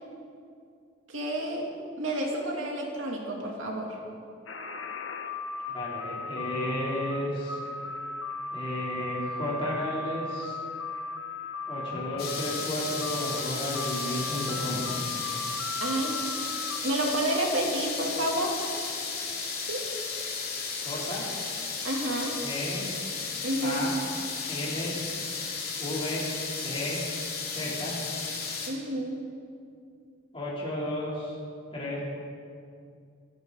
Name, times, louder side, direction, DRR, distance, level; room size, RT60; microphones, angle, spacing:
voice 1, 1.1-1.7 2.0-3.9 15.8-16.2 16.8-18.6 19.7-19.9 21.8-22.4 23.4-23.9 28.7-29.2, right 1 dB, 85° right, -1 dB, 2.9 m, -30 dB
sound 1, 4.5-16.8, left 3 dB, 80° left, 1.1 m, -37 dB
voice 2, 5.7-7.6 8.5-10.6 11.7-15.0 20.8-21.3 22.4-22.9 23.6-24.0 24.5-25.1 25.8-26.3 26.6-27.0 27.4-28.0 30.3-31.3 31.7-32.0, left 1 dB, 25° left, -6 dB, 3.4 m, -33 dB
sound 2, 12.2-28.7, left 5 dB, 50° left, 2.7 m, -34 dB
26.5 x 11.0 x 4.1 m, 2.4 s
head